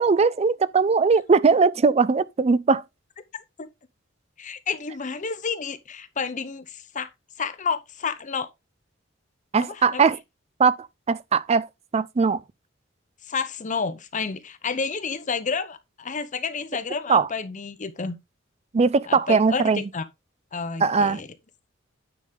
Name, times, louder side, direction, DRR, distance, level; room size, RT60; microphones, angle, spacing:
voice 1, 0.0-2.8 9.5-10.2 10.6-10.7 11.1-11.7 11.9-12.4 17.1-17.3 18.7-19.8 20.8-21.2, right 5 dB, 35° right, 0.4 m, -20 dB
voice 2, 4.4-7.1 7.4-8.5 9.6-10.1 13.2-18.2 19.1-20.1 20.5-21.3, left 5 dB, 40° left, 0.8 m, -30 dB
9.3 x 5.3 x 3.6 m
head